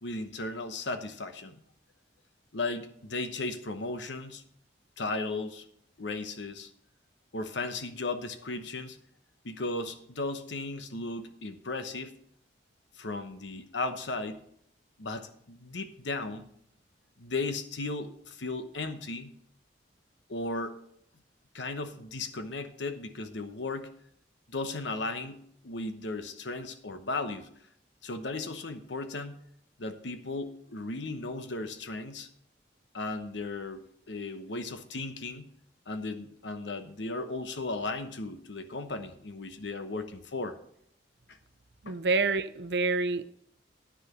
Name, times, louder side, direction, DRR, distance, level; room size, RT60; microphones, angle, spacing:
voice 1, 0.0-1.6 2.5-4.4 5.0-5.6 6.0-6.7 7.3-9.0 9.4-12.1 13.0-14.4 15.0-16.5 17.2-19.3 20.3-20.8 21.5-23.9 24.5-25.4 25.6-27.5 28.0-29.4 29.8-32.3 32.9-35.5 35.9-40.6 41.9-42.0, left 3 dB, 80° left, 9 dB, 1.0 m, -36 dB
voice 2, 41.8-43.3, right 3 dB, 65° right, 13 dB, 0.6 m, -27 dB
9.9 x 6.7 x 6.1 m, 0.69 s
head